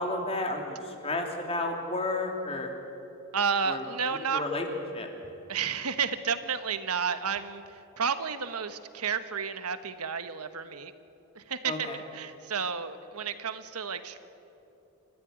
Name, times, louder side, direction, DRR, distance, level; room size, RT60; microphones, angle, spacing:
voice 1, 0.0-2.7 3.6-3.8 4.3-4.7 4.9-5.1 11.6-12.0, left 2 dB, 25° left, 2 dB, 2.9 m, -31 dB
voice 2, 3.3-4.4 5.5-10.9 11.3-14.2, right 6 dB, 85° right, 10 dB, 1.4 m, -31 dB
28.5 x 14.5 x 9.4 m, 2.9 s
head